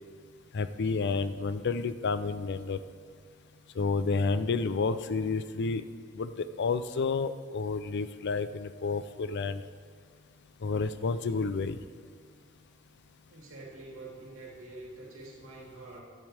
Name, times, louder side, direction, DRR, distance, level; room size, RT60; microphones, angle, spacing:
voice 1, 0.5-2.8 3.8-5.8 6.1-9.6 10.6-11.8, left 4 dB, 55° left, 13 dB, 0.5 m, -30 dB
voice 2, 13.3-16.0, right 2 dB, 75° right, -3 dB, 2.9 m, -46 dB
16.0 x 10.5 x 3.4 m, 2.1 s
head